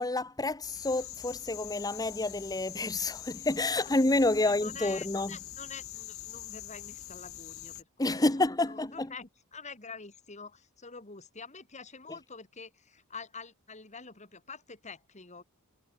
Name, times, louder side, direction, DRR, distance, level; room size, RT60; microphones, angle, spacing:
voice 1, 0.0-5.4 8.0-9.1, left 2 dB, 15° left, 1.2 m, -29 dB
sound 1, 0.6-7.8, left 13 dB, 70° left, 5.4 m, -44 dB
voice 2, 4.4-8.1 8.7-15.4, left 4 dB, 30° left, 4.2 m, -46 dB
head